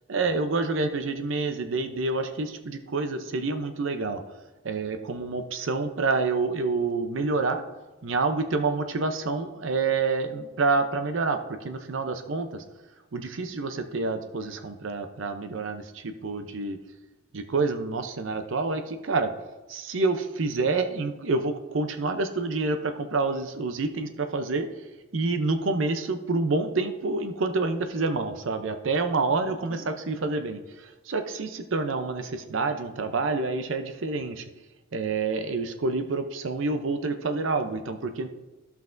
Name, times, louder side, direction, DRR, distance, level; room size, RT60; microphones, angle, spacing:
voice 1, 0.1-4.2 4.6-7.6 8.0-12.6 13.1-16.8 17.3-19.3 19.7-24.7 25.1-34.4 34.9-38.3, right 3 dB, 75° right, 8 dB, 0.6 m, -28 dB
14.5 x 5.7 x 2.6 m, 1.1 s
head